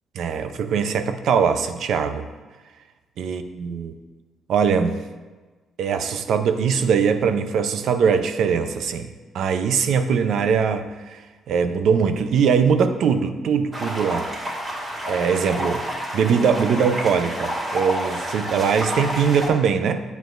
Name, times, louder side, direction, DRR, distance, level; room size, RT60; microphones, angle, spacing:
voice 1, 0.1-2.3 3.2-3.9 4.5-5.0 5.8-9.1 9.3-11.2 11.5-14.3 15.1-15.8 16.1-20.0, right 6 dB, 70° right, 9 dB, 0.6 m, -21 dB
sound 1, 13.7-19.5, equal, 30° right, 2.2 m, -29 dB
9.1 x 8.0 x 2.6 m, 1.3 s
cardioid pair, 90°, 0 cm